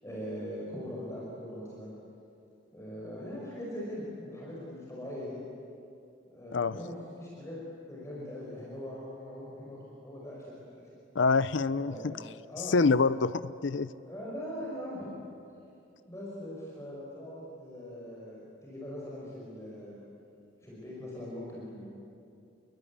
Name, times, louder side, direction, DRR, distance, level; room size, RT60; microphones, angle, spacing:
voice 1, 0.0-1.9 2.7-5.4 6.3-7.6 7.9-10.9 11.8-12.2 12.5-12.8 14.0-15.2 16.1-20.0 20.6-21.9, equal, 15° left, -5 dB, 5.6 m, -41 dB
voice 2, 11.2-12.1 12.7-13.9, left 4 dB, 70° left, 15 dB, 0.6 m, -26 dB
29.5 x 22.5 x 8.6 m, 2.6 s
head